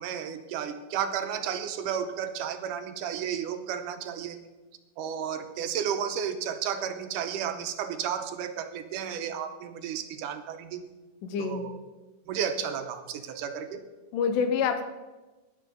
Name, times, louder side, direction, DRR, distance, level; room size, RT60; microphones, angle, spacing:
voice 1, 0.0-4.4 5.0-10.8 11.4-11.8 12.3-13.8, right 8 dB, 75° right, 8 dB, 2.3 m, -33 dB
voice 2, 11.2-11.6 14.1-14.8, left 6 dB, 75° left, 8 dB, 2.5 m, -26 dB
16.5 x 10.0 x 3.9 m, 1.2 s
omnidirectional pair, 3.9 m